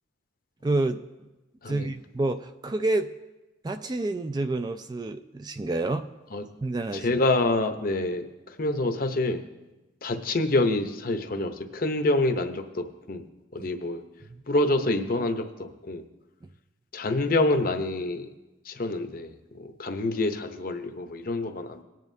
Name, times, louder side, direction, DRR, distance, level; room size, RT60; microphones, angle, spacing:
voice 1, 0.6-1.0 1.6-3.1 3.6-6.1 6.6-7.2 13.6-13.7 14.3-14.4, right 2 dB, 20° right, 9 dB, 0.3 m, -28 dB
voice 2, 6.9-9.4 10.0-13.2 13.5-14.0 14.5-16.0 16.9-18.3 18.7-21.8, left 2 dB, 45° left, 7 dB, 0.7 m, -27 dB
19.5 x 9.2 x 2.7 m, 1.1 s
head